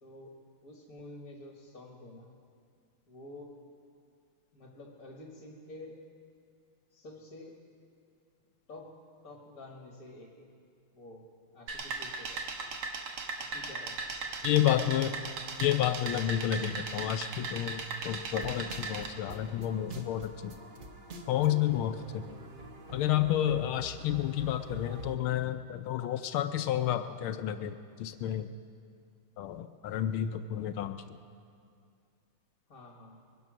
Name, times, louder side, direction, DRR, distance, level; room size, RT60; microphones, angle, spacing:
voice 1, 0.0-2.3 3.1-3.6 4.5-6.1 6.9-7.6 8.7-10.5 10.9-11.3 11.5-12.4 13.4-14.0 32.7-33.2, left 1 dB, 45° left, 0 dB, 1.8 m, -49 dB
sound 1, 11.7-19.1, right 4 dB, 80° right, 2.1 m, -38 dB
voice 2, 14.4-15.2 15.6-20.6 21.3-22.3 22.9-28.5 29.4-31.2, left 11 dB, 80° left, 9 dB, 1.4 m, -30 dB
sound 2, 18.3-25.2, right 2 dB, 50° right, 0.6 m, -47 dB
22.0 x 11.0 x 6.1 m, 2.3 s
omnidirectional pair, 2.4 m